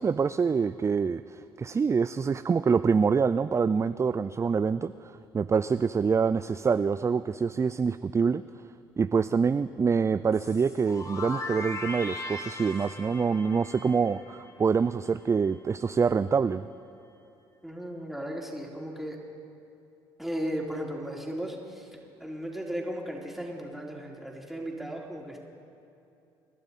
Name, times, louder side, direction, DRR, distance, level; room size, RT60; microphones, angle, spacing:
voice 1, 0.0-8.4 9.0-16.7, right 5 dB, 25° right, 13 dB, 0.4 m, -26 dB
sound 1, 10.3-15.1, left 2 dB, 30° left, 2.4 m, -39 dB
voice 2, 17.6-19.2 20.2-21.9 22.2-25.4, equal, ahead, -2 dB, 3.5 m, -35 dB
27.0 x 12.0 x 4.3 m, 2.7 s
hypercardioid pair, 55°, 11 cm